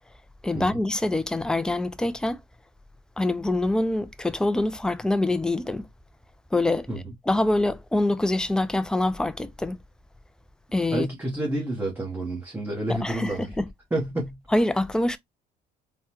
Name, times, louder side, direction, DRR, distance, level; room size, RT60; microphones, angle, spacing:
voice 1, 0.4-2.4 3.2-5.9 6.5-6.9 7.3-9.8 10.7-11.1 12.9-13.7 14.5-15.2, left 2 dB, 5° left, 0.3 m, -25 dB
voice 2, 10.9-13.5 13.9-14.4, right 1 dB, 10° right, 1.0 m, -29 dB
3.4 x 2.1 x 2.9 m
cardioid pair, 120°, 18 cm